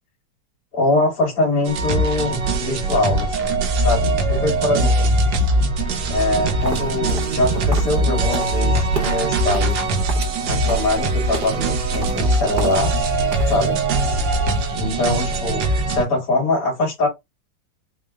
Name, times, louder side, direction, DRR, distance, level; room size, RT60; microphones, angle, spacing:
voice 1, 0.7-5.1 6.1-9.8 10.4-12.9 13.5-13.8 14.7-17.1, left 2 dB, 55° left, 2.1 m, -23 dB
sound 1, 1.7-16.0, right 2 dB, 85° right, 1.4 m, -21 dB
sound 2, 6.6-13.0 13.3-13.8, right 2 dB, 40° right, 0.9 m, -33 dB
4.4 x 2.0 x 3.4 m
omnidirectional pair, 1.9 m